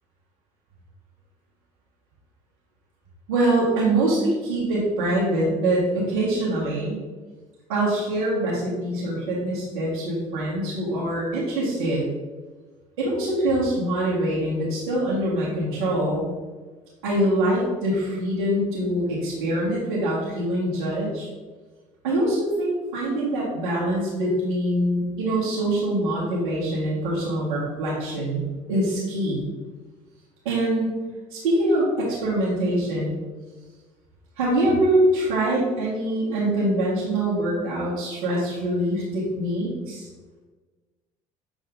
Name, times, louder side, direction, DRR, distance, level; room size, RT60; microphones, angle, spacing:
voice 1, 3.3-7.0 7.7-12.0 13.0-16.3 17.0-21.3 22.0-29.4 30.4-30.9 31.3-33.1 34.4-40.1, right 1 dB, 80° right, -8 dB, 1.8 m, -24 dB
7.2 x 3.6 x 3.7 m, 1.3 s
hypercardioid pair, 60°, 17 cm